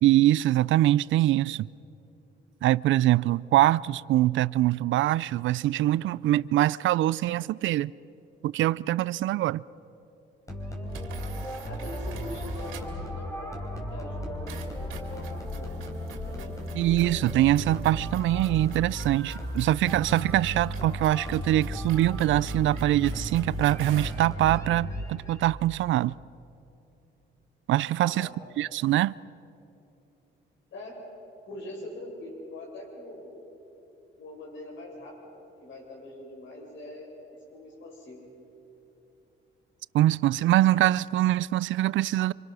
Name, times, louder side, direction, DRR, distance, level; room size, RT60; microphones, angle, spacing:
voice 1, 0.0-1.7 2.6-7.9 8.4-9.6 16.8-26.1 27.7-28.3 28.6-29.1 39.9-42.3, right 14 dB, 75° right, 0.4 m, -23 dB
sound 1, 10.5-25.4, equal, 15° left, 3.9 m, -35 dB
sound 2, 10.9-13.1 14.5-24.3, right 7 dB, 90° right, 2.6 m, -48 dB
voice 2, 11.7-15.9 16.2-16.5 28.0-28.4 30.7-31.0 31.4-33.3 34.1-35.3 35.6-37.1 37.5-38.3, left 1 dB, 70° left, 7.9 m, -43 dB
26.0 x 25.0 x 6.2 m
cardioid pair, 90°, 20 cm